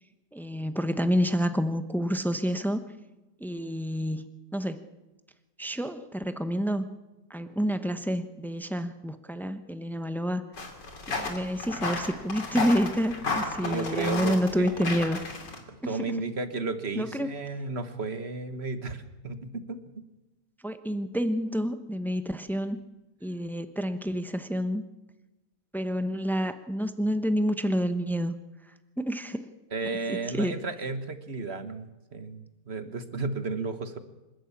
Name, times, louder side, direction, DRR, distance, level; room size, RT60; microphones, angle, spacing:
voice 1, 0.3-2.8 3.4-4.3 4.5-4.8 5.6-6.8 7.3-10.4 11.1-15.2 16.9-17.3 20.6-22.8 23.2-24.8 25.7-28.4 29.0-29.4 30.3-30.5, equal, ahead, 10 dB, 0.6 m, -28 dB
sound 1, 10.5-15.6, left 3 dB, 80° left, 3.4 m, -33 dB
voice 2, 13.6-15.0 15.7-20.0 29.7-34.0, right 3 dB, 40° right, 10 dB, 1.5 m, -34 dB
26.5 x 12.0 x 8.6 m, 1.1 s
omnidirectional pair, 1.9 m